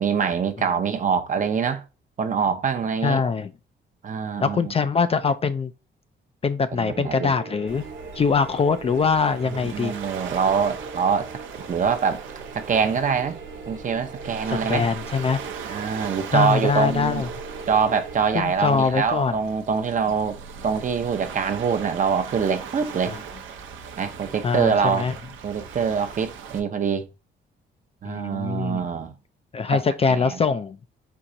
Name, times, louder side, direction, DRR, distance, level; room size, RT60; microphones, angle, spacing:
voice 1, 0.0-1.8 2.2-3.2 4.0-4.7 6.7-7.3 9.7-11.3 11.7-12.2 12.5-13.4 13.7-14.9 15.7-17.2 17.7-20.4 20.6-23.2 24.0-25.1 25.4-27.1 28.0-29.1 29.7-29.8 30.1-30.4, right 6 dB, 40° right, 0.7 m, -24 dB
voice 2, 3.0-3.5 4.4-5.7 6.4-7.8 8.2-9.9 14.5-15.4 16.3-17.3 18.3-19.4 23.1-23.2 24.4-25.1 28.0-28.8 29.5-30.8, left 5 dB, 30° left, 0.4 m, -23 dB
sound 1, 6.7-18.2, right 4 dB, 55° right, 1.1 m, -40 dB
Waves surf, 7.7-26.6, right 6 dB, 80° right, 0.8 m, -39 dB
4.5 x 2.6 x 3.8 m
cardioid pair, 90°, 20 cm